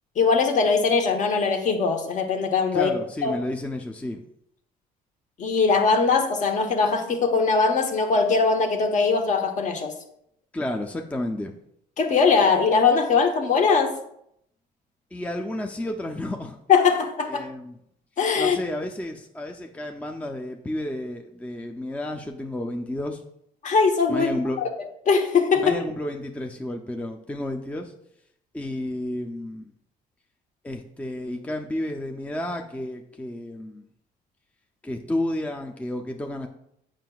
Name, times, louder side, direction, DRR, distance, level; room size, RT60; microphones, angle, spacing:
voice 1, 0.2-2.9 3.2-3.4 5.4-9.9 12.0-13.9 16.7-17.4 18.2-18.6 23.6-24.3 24.6-24.7 25.1-25.7, left 5 dB, 45° left, 5 dB, 1.0 m, -21 dB
voice 2, 2.7-4.2 10.5-11.5 15.1-16.6 17.3-17.8 18.4-23.2 24.1-24.6 25.6-27.9 28.5-29.7 30.6-33.8 34.8-36.5, left 1 dB, 10° left, 4 dB, 0.4 m, -31 dB
7.4 x 5.7 x 2.3 m, 0.73 s
cardioid pair, 110°, 17 cm